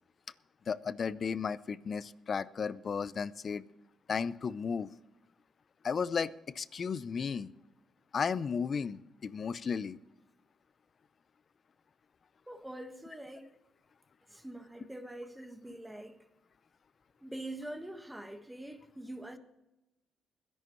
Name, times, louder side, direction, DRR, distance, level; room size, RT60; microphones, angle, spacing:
voice 1, 0.7-3.6 4.1-4.9 5.8-7.5 8.1-10.0, left 6 dB, 45° left, 0.6 m, -34 dB
voice 2, 12.5-13.5 14.3-16.2 17.2-19.4, right 1 dB, 5° right, 1.5 m, -44 dB
21.5 x 11.0 x 3.1 m
cardioid pair, 90°, 0 cm